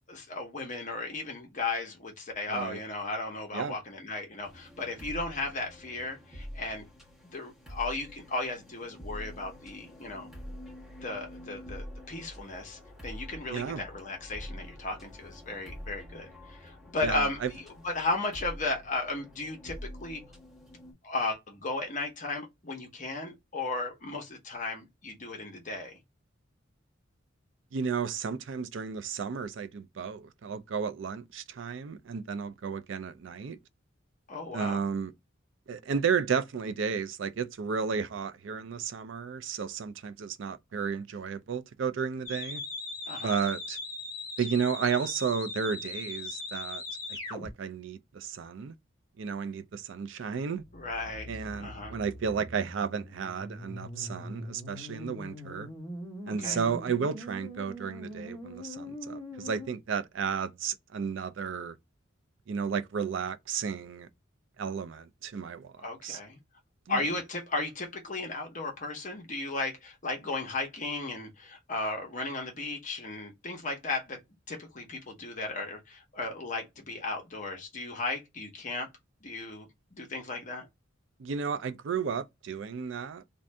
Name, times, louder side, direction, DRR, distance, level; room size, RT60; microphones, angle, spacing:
voice 1, 0.1-6.9 7.3-10.3 11.0-17.4 17.8-20.2 21.0-26.0 34.3-34.8 43.1-43.3 50.7-51.3 51.6-52.0 56.4-56.6 65.8-66.4 66.9-74.2 74.5-78.9 79.2-80.7, left 3 dB, 40° left, 0.9 m, -35 dB
voice 2, 2.5-2.8 3.5-3.8 13.5-13.8 17.0-17.5 27.7-33.6 34.5-35.1 35.7-42.6 43.2-43.8 44.4-46.8 47.1-48.7 49.2-50.6 51.3-55.7 56.3-61.8 62.5-64.1 64.6-66.2 66.9-67.0 81.2-83.2, right 6 dB, 70° right, 0.4 m, -33 dB
sound 1, 4.4-20.9, equal, ahead, 1.1 m, -46 dB
sound 2, 42.2-47.5 50.6-59.7, left 2 dB, 20° left, 1.1 m, -41 dB
2.6 x 2.5 x 3.2 m
head